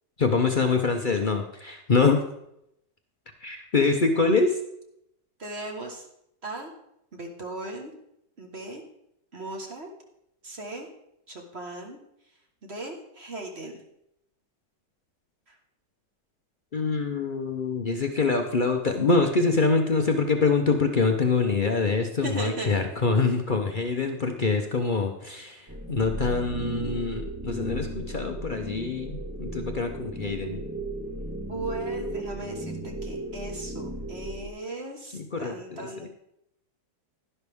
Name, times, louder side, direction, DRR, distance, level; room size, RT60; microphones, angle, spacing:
voice 1, 0.2-2.2 3.4-4.6 16.7-30.6 35.1-36.1, left 4 dB, 50° left, 4 dB, 0.6 m, -25 dB
voice 2, 5.4-6.1 6.4-6.7 7.1-7.9 8.4-8.8 9.3-9.9 10.4-10.9 11.3-12.0 12.6-13.7 22.2-22.8 31.5-36.1, right 2 dB, 40° right, 1 dB, 1.6 m, -37 dB
sound 1, 25.7-34.5, right 1 dB, 10° right, 0.7 m, -35 dB
11.5 x 11.0 x 3.5 m, 0.78 s
omnidirectional pair, 1.9 m